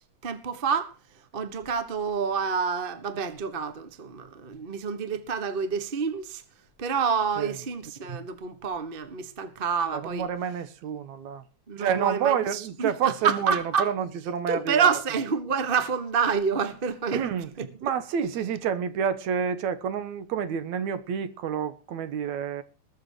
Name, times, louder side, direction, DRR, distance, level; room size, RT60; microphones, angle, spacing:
voice 1, 0.2-0.9 1.3-6.4 6.8-10.3 11.7-12.9 13.2-13.9 14.5-17.2 17.6-17.9, right 6 dB, 40° right, 0.7 m, -28 dB
voice 2, 9.9-11.4 11.8-15.0 17.1-17.5 17.8-22.6, right 7 dB, 75° right, 2.5 m, -29 dB
20.5 x 7.0 x 6.6 m
omnidirectional pair, 3.4 m